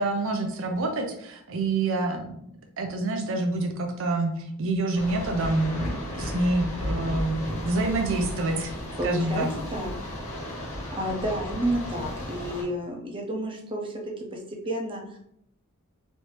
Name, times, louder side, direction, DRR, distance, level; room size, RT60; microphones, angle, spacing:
voice 1, 0.0-2.3 2.8-8.7 9.0-9.5, right 2 dB, 60° right, 4 dB, 0.6 m, -27 dB
sound 1, 4.9-12.6, equal, 30° left, 1.3 m, -34 dB
voice 2, 9.0-9.4 9.7-9.9 10.9-14.0 14.3-15.2, equal, 25° right, 1 dB, 0.7 m, -30 dB
3.2 x 2.7 x 3.1 m, 0.73 s
head